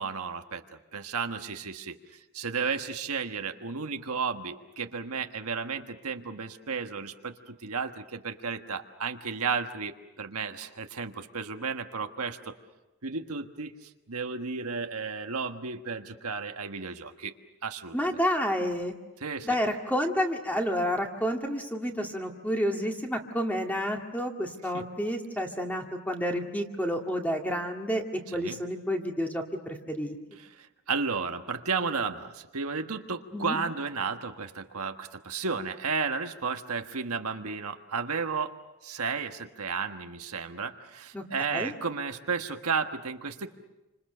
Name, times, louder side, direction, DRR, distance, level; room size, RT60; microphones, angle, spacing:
voice 1, 0.0-12.5 13.0-17.3 17.6-18.2 19.2-19.6 24.7-24.9 28.3-28.6 30.4-38.5 38.8-43.5, right 5 dB, 75° right, 6 dB, 1.5 m, -33 dB
voice 2, 17.9-18.9 19.4-28.0 28.3-30.1 33.3-33.6 41.1-41.2 41.5-41.7, equal, 5° left, 2 dB, 2.2 m, -30 dB
29.0 x 26.0 x 6.8 m, 1.0 s
head